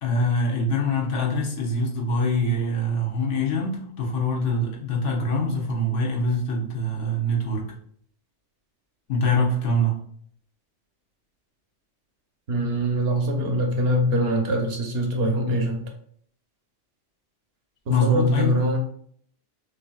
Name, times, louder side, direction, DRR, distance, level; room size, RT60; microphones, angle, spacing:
voice 1, 0.0-7.7 9.1-10.0 15.5-15.6 17.9-18.6, left 1 dB, 85° left, -1 dB, 1.3 m, -24 dB
voice 2, 12.5-15.8 17.9-18.8, equal, 60° right, 3 dB, 1.0 m, -23 dB
6.1 x 2.7 x 2.3 m, 0.62 s
omnidirectional pair, 1.2 m